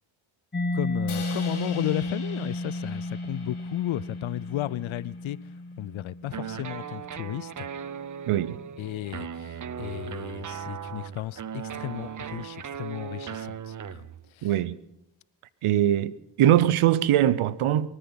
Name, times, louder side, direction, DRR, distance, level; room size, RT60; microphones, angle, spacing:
Mallet percussion, 0.5-8.0, left 1 dB, 20° left, 1.2 m, -33 dB
voice 1, 0.7-5.4 5.8-7.7 8.8-14.1 14.4-14.5, left 14 dB, 75° left, 0.6 m, -34 dB
Crash cymbal, 1.1-5.3, left 6 dB, 90° left, 3.8 m, -43 dB
sound 1, 6.3-14.3, right 7 dB, 40° right, 0.7 m, -37 dB
voice 2, 8.3-8.6 14.4-14.8 15.6-16.1 16.4-17.9, right 12 dB, 90° right, 0.7 m, -21 dB
23.0 x 9.9 x 5.7 m
cardioid pair, 50°, 49 cm